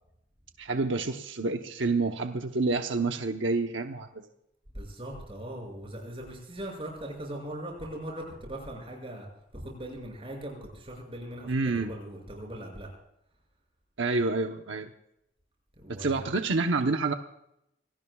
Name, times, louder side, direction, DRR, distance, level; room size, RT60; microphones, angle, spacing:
voice 1, 0.6-4.3 11.5-11.9 14.0-14.9 16.0-17.1, right 3 dB, 85° right, 5 dB, 1.0 m, -28 dB
voice 2, 4.7-9.3 9.5-12.9 15.8-16.3, right 1 dB, 30° right, 1 dB, 6.8 m, -40 dB
25.5 x 18.5 x 2.4 m, 0.80 s
head